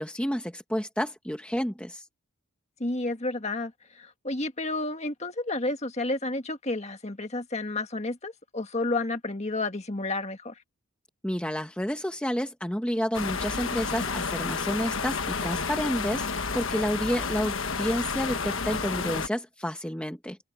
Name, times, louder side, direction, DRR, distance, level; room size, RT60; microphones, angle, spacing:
voice 1, 0.0-2.0 11.2-20.4, equal, 5° left, 1.1 m, -30 dB
voice 2, 2.8-10.5, left 2 dB, 30° left, 1.8 m, -31 dB
sound 1, 13.1-19.3, left 5 dB, 65° left, 1.3 m, -31 dB
head